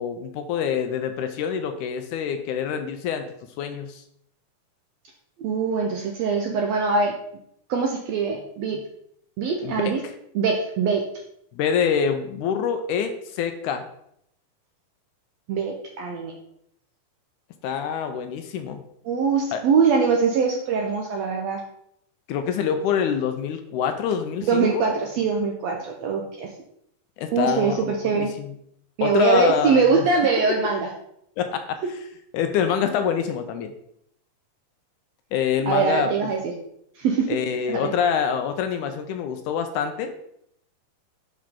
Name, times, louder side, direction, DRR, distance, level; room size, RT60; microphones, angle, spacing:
voice 1, 0.0-3.3 3.6-4.0 9.6-10.1 11.5-13.9 17.6-18.8 19.5-19.6 22.3-24.8 27.2-28.5 29.0-30.0 31.4-32.0 32.3-33.7 35.3-36.3 37.3-40.1, left 7 dB, 80° left, 7 dB, 2.0 m, -26 dB
voice 2, 5.4-7.1 7.7-8.8 9.4-10.0 10.3-11.0 15.5-16.3 19.0-21.6 24.4-26.5 27.3-28.3 29.0-30.9 35.7-36.5 37.0-37.4 37.7-37.9, right 5 dB, 75° right, 1 dB, 1.6 m, -22 dB
9.5 x 3.9 x 3.7 m, 0.73 s
omnidirectional pair, 3.7 m